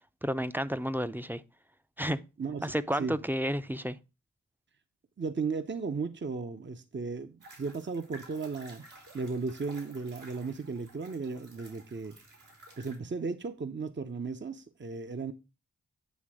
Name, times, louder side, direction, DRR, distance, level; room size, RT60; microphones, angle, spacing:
voice 1, 0.2-1.4 2.0-2.2 2.6-4.0, equal, 5° right, 0.6 m, -31 dB
voice 2, 2.4-2.7 3.0-3.2 5.2-8.9 9.1-12.2 12.8-15.3, right 4 dB, 40° right, 0.8 m, -35 dB
sound 1, 7.4-13.0, right 2 dB, 75° right, 3.4 m, -53 dB
9.4 x 3.4 x 6.2 m
cardioid pair, 50°, 30 cm